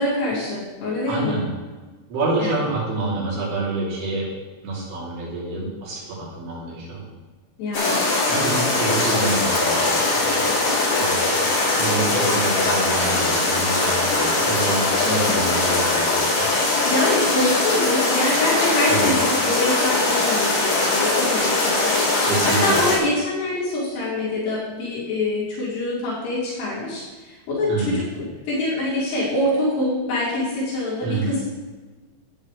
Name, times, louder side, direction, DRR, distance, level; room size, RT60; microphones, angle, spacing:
voice 1, 0.0-1.4 2.4-2.5 7.6-8.0 15.0-15.4 16.9-31.4, left 1 dB, 80° left, -9 dB, 5.2 m, -25 dB
voice 2, 1.1-1.5 2.1-4.3 4.6-7.0 8.3-10.5 10.9-11.5 11.7-16.5 18.9-19.1 22.2-22.8 27.7-28.0 31.0-31.3, right 2 dB, 75° right, -7 dB, 5.6 m, -27 dB
sound 1, 7.7-23.0, left 2 dB, 40° left, 4.1 m, -21 dB
12.5 x 9.3 x 3.3 m, 1.4 s
omnidirectional pair, 5.6 m